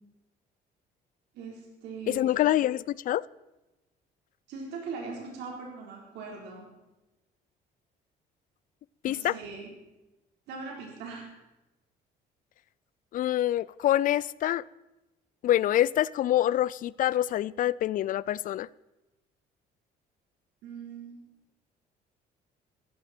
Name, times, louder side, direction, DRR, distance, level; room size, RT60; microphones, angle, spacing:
voice 1, 1.3-2.6 4.5-6.7 9.0-9.7 10.5-11.3 20.6-21.2, right 4 dB, 85° right, 4.1 m, -40 dB
voice 2, 2.1-3.2 9.0-9.3 13.1-14.6 15.4-18.7, left 13 dB, 55° left, 0.4 m, -26 dB
16.0 x 14.5 x 4.4 m
cardioid pair, 110°, 17 cm